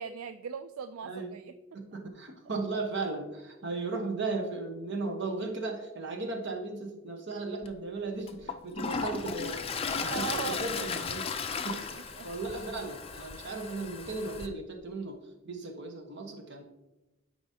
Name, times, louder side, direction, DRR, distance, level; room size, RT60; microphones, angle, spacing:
voice 1, 0.0-1.5 10.0-10.9 11.7-12.3, right 7 dB, 75° right, 11 dB, 0.3 m, -39 dB
voice 2, 1.0-1.4 1.7-9.6 9.9-11.2 11.6-15.2 15.4-16.6, right 3 dB, 55° right, 4 dB, 1.1 m, -36 dB
Toilet flush, 7.6-7.7 8.3-14.5, left 5 dB, 25° left, 0.4 m, -36 dB
sound 1, 9.1-14.4, left 1 dB, 10° right, 2.1 m, -51 dB
12.0 x 4.9 x 2.8 m, 0.99 s
head